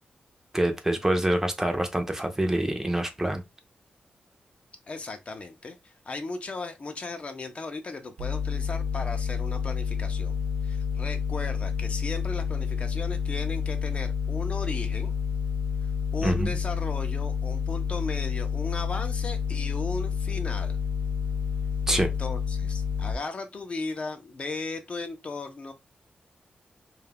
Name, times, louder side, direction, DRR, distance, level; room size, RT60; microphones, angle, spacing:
voice 1, 0.5-3.4 16.2-16.6 21.9-22.1, right 1 dB, 15° right, 0.5 m, -26 dB
voice 2, 4.9-10.4 10.6-15.1 16.1-20.8 21.9-25.7, left 3 dB, 45° left, 0.5 m, -36 dB
sound 1, 8.2-23.2, left 7 dB, 80° right, 0.4 m, -29 dB
2.3 x 2.1 x 3.3 m
wide cardioid pair, 105°, 3 cm